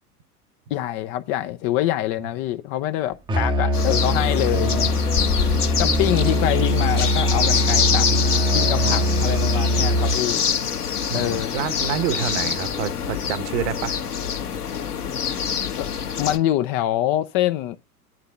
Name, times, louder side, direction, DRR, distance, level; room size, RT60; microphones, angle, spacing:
voice 1, 0.7-4.9 5.8-8.1 8.5-10.5 11.1-11.6 15.8-15.9 16.2-17.8, left 13 dB, 30° left, 0.5 m, -25 dB
Musical instrument, 3.3-10.3, left 1 dB, 10° right, 0.8 m, -22 dB
sound 1, 3.7-16.4, left 7 dB, 75° left, 1.5 m, -25 dB
voice 2, 4.5-4.9 8.8-9.3 11.1-14.0, right 9 dB, 50° right, 1.3 m, -28 dB
10.5 x 3.7 x 6.6 m
figure-of-eight pair, 90°, 46 cm